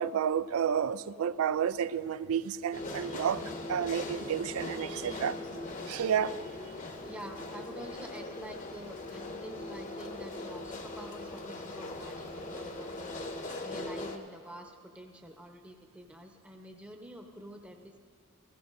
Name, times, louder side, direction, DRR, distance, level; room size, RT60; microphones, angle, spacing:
voice 1, 0.0-3.4 3.7-5.4 5.9-6.3, right 8 dB, 80° right, 16 dB, 0.4 m, -30 dB
sound 1, 2.7-14.2, left 2 dB, 35° left, 0.9 m, -40 dB
voice 2, 7.0-13.1 13.6-18.0, right 1 dB, 5° right, 3 dB, 0.9 m, -47 dB
16.5 x 16.0 x 2.6 m, 2.1 s
head